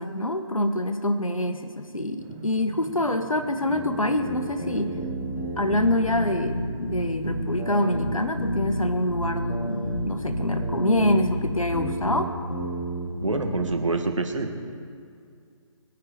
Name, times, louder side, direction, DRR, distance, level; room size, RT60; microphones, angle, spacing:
voice 1, 0.0-5.0 5.6-12.3, left 1 dB, 90° left, 8 dB, 1.3 m, -26 dB
sound 1, 2.2-11.7, right 6 dB, 10° right, 0.4 m, -45 dB
sound 2, 3.7-13.7, equal, 70° left, 3.6 m, -30 dB
voice 2, 13.2-14.6, right 3 dB, 65° right, 5 dB, 1.7 m, -26 dB
21.0 x 9.5 x 5.1 m, 2.3 s
figure-of-eight pair, 150°, 17 cm